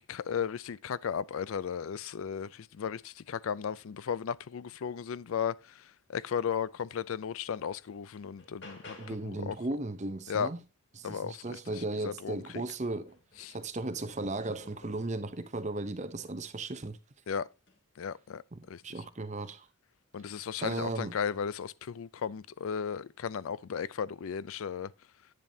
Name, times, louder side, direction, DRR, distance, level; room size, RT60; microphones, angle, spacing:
voice 1, 0.0-9.6 10.3-10.5 11.0-12.6 13.4-13.6 17.3-17.5 18.0-18.4 18.7-18.8 20.1-24.9, left 7 dB, 70° left, 0.4 m, -35 dB
sound 1, 7.0-7.1 7.6-9.4 11.8-11.9 12.3-15.3 16.0-16.5 17.6-17.8, left 1 dB, 55° left, 2.5 m, -54 dB
voice 2, 9.0-10.6 11.0-13.2 13.5-17.0 18.8-19.7 20.6-21.1, right 2 dB, 30° right, 0.7 m, -36 dB
10.5 x 9.1 x 2.7 m
head